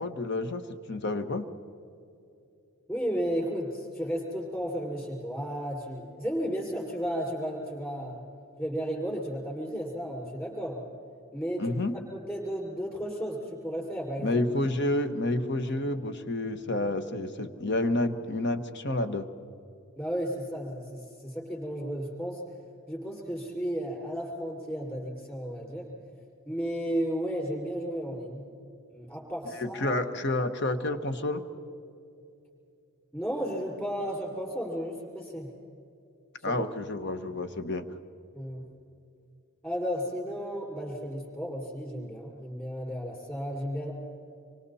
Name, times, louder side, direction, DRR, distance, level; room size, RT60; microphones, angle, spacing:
voice 1, 0.0-1.5 11.6-11.9 14.2-19.3 29.6-31.4 36.4-37.9, left 2 dB, 50° left, 9 dB, 1.2 m, -29 dB
voice 2, 2.9-8.2 8.6-10.8 11.3-11.8 12.1-14.4 20.0-22.4 22.9-25.9 26.5-28.5 28.9-30.0 33.1-35.5 36.4-36.6 38.3-38.7 39.6-43.9, equal, 10° left, -2 dB, 5.6 m, -33 dB
27.0 x 24.5 x 4.2 m, 2.7 s
head